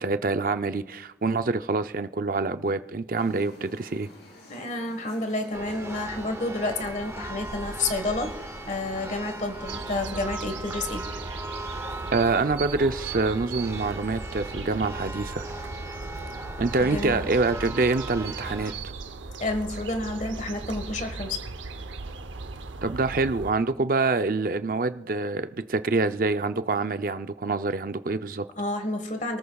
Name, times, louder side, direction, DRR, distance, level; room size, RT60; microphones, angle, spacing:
voice 1, 0.0-4.1 12.1-15.5 16.6-18.7 22.8-28.4, right 3 dB, 45° right, 10 dB, 0.5 m, -26 dB
sound 1, 3.1-9.8, left 1 dB, 60° left, 3.8 m, -50 dB
voice 2, 4.5-8.3 8.7-11.0 16.8-17.3 19.4-21.4 28.6-29.4, left 2 dB, 40° left, 6 dB, 1.5 m, -30 dB
Church bell, 5.5-18.7, right 1 dB, 15° right, 0.7 m, -38 dB
sound 2, 9.7-23.5, right 3 dB, 85° right, 0.8 m, -38 dB
29.0 x 13.5 x 2.4 m, 0.96 s
head